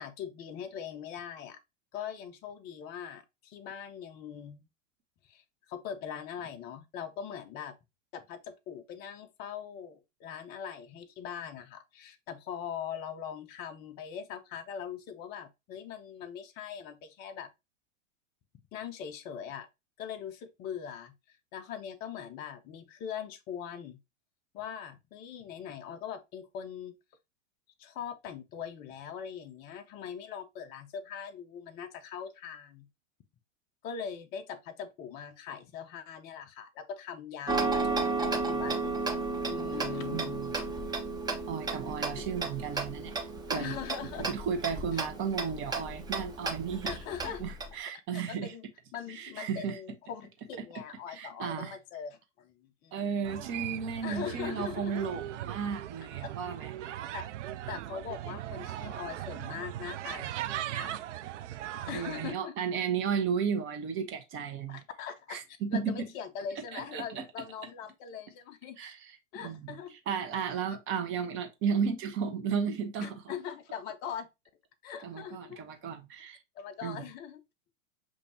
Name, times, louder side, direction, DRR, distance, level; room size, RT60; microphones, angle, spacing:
voice 1, 0.0-1.6 1.9-4.6 5.2-7.7 8.1-17.5 18.7-19.7 20.0-24.0 24.5-27.0 27.8-32.9 33.8-38.9 39.5-40.7 43.5-44.2 46.8-47.4 48.1-48.6 48.9-53.4 54.0-55.2 57.1-57.3 57.7-61.0 61.8-62.5 64.7-68.8 69.3-69.9 73.0-74.3 74.8-75.6 76.6-77.4, left 8 dB, 25° left, 0.5 m, -41 dB
Tick-tock, 37.5-47.7, right 3 dB, 10° right, 0.7 m, -33 dB
voice 2, 40.1-40.6 41.5-43.1 43.5-43.8 44.3-46.9 47.2-48.5 49.1-49.8 51.1-51.7 52.9-56.7 61.9-64.8 65.3-66.0 66.7-67.2 68.8-69.2 69.4-69.8 70.1-73.2 75.0-76.4 76.8-77.1, right 6 dB, 30° right, 1.0 m, -34 dB
sound 1, 53.2-62.3, right 12 dB, 65° right, 0.5 m, -39 dB
6.7 x 2.7 x 2.8 m
hypercardioid pair, 105°, 39 cm